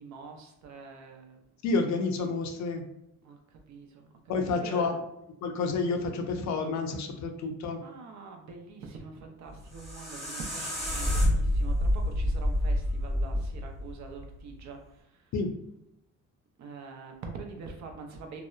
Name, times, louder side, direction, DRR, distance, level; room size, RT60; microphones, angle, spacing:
voice 1, 0.0-1.4 3.2-4.1 4.4-4.9 5.8-5.9 7.8-15.3 16.6-18.4, right 4 dB, 65° right, 3 dB, 0.6 m, -45 dB
voice 2, 1.6-2.9 4.3-5.0 5.4-7.8 15.3-15.5, left 4 dB, 65° left, 4 dB, 0.5 m, -29 dB
sound 1, 9.5-14.6, left 1 dB, ahead, 0.8 m, -28 dB
2.7 x 2.1 x 2.2 m, 0.82 s
cardioid pair, 90°, 30 cm